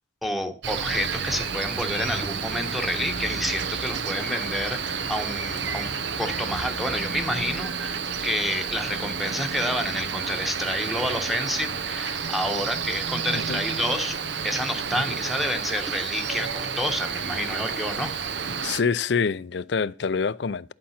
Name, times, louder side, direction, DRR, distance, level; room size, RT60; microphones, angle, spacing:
voice 1, 0.2-5.9 6.2-14.2 14.4-18.1, left 1 dB, ahead, 1.2 m, -29 dB
Cricket, 0.6-18.8, right 6 dB, 65° right, 0.8 m, -30 dB
voice 2, 18.6-20.7, left 5 dB, 60° left, 0.5 m, -26 dB
11.0 x 6.9 x 5.8 m
head